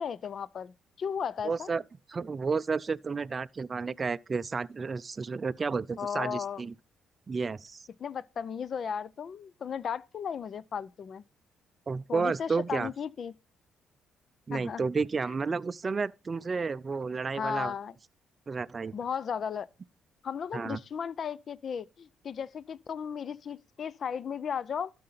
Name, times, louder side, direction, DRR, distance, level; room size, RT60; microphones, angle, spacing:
voice 1, 0.0-1.7 6.0-6.6 8.0-11.2 12.1-13.3 14.5-14.8 17.4-17.9 18.9-19.7 20.2-24.9, left 7 dB, 55° left, 0.4 m, -35 dB
voice 2, 1.4-1.8 2.1-6.7 7.3-7.8 11.9-12.9 14.5-17.7 18.5-18.9 20.5-20.8, right 4 dB, 35° right, 0.4 m, -31 dB
12.5 x 5.3 x 4.0 m
cardioid pair, 90°, 0 cm